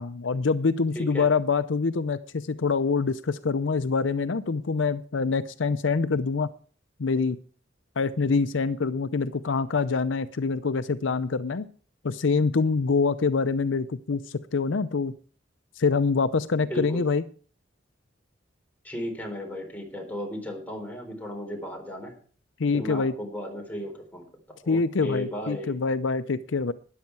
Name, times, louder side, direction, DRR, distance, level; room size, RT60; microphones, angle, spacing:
voice 1, 0.0-6.5 7.0-7.4 8.0-11.7 12.0-15.1 15.8-17.2 22.6-23.1 24.7-26.7, left 4 dB, 70° left, 13 dB, 0.6 m, -25 dB
voice 2, 0.9-1.3 16.5-17.0 18.8-22.1 22.7-25.8, equal, 10° left, 2 dB, 3.8 m, -35 dB
13.0 x 10.5 x 4.6 m, 0.41 s
head